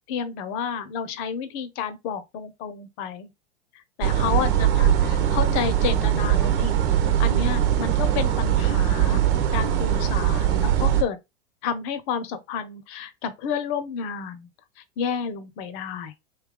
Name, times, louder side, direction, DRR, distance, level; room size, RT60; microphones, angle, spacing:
voice 1, 0.1-3.3 4.0-6.7 7.2-11.2 11.6-14.5 15.0-16.1, left 7 dB, 55° left, 0.9 m, -30 dB
sound 1, 4.0-11.0, right 10 dB, 65° right, 1.1 m, -21 dB
3.3 x 3.0 x 3.6 m
hypercardioid pair, 100°, 31 cm